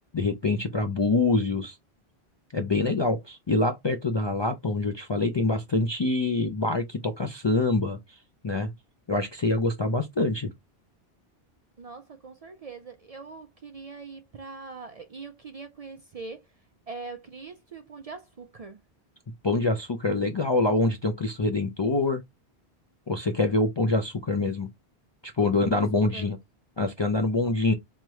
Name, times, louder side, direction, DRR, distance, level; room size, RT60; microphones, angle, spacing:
voice 1, 0.1-1.8 2.5-8.2 8.4-8.7 9.1-10.5 19.4-22.2 23.1-24.7 25.4-26.4 26.8-27.7, left 2 dB, 40° left, 0.4 m, -25 dB
voice 2, 11.8-16.5 16.9-18.8 25.6-26.3 27.4-27.6, right 4 dB, 50° right, 0.4 m, -42 dB
3.5 x 3.1 x 3.0 m
omnidirectional pair, 1.1 m